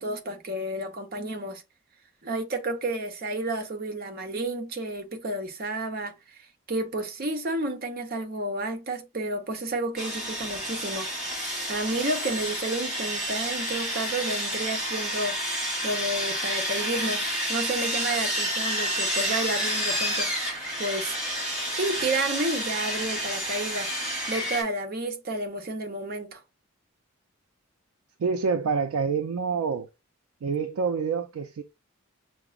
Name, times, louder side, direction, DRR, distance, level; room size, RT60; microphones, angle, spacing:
voice 1, 0.0-1.6 2.2-6.4 6.7-11.1 11.7-15.6 15.8-21.1 21.7-26.4, right 2 dB, 45° right, 0.6 m, -31 dB
Sawing, 10.0-24.6, equal, 5° right, 1.2 m, -30 dB
voice 2, 28.2-29.9 30.4-31.6, right 5 dB, 80° right, 0.4 m, -27 dB
5.8 x 2.0 x 2.3 m
head